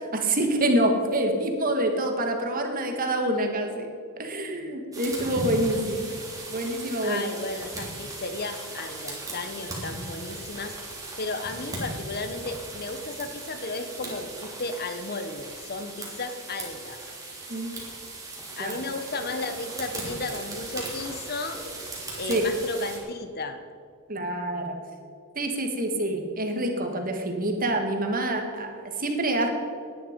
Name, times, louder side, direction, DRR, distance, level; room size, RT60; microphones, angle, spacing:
voice 1, 0.1-3.9 4.2-6.1 6.5-7.2 17.5-17.7 18.6-18.8 22.3-22.5 24.1-24.8 25.4-29.5, right 1 dB, 40° right, 4 dB, 1.8 m, -26 dB
sound 1, 4.9-23.0, right 2 dB, 15° right, 3.2 m, -38 dB
voice 2, 7.0-10.8 11.2-17.0 18.6-21.6 22.2-23.6, left 3 dB, 45° left, 8 dB, 1.0 m, -34 dB
17.5 x 10.5 x 5.2 m, 2.2 s
head